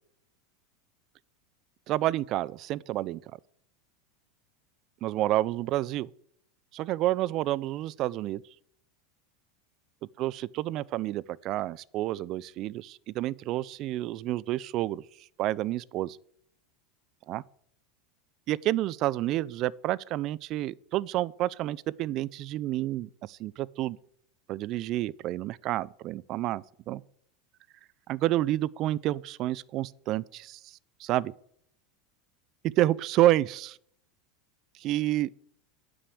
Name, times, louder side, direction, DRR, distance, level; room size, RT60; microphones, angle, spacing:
voice 1, 1.9-3.2 5.0-6.1 6.7-8.4 10.2-15.0 15.4-16.2 17.3-17.4 18.5-24.0 24.5-27.0 28.1-30.7 31.0-31.3 32.6-33.8 34.8-35.3, right 15 dB, 40° right, 0.4 m, -29 dB
9.3 x 6.2 x 8.5 m
supercardioid pair, 145°, 0 cm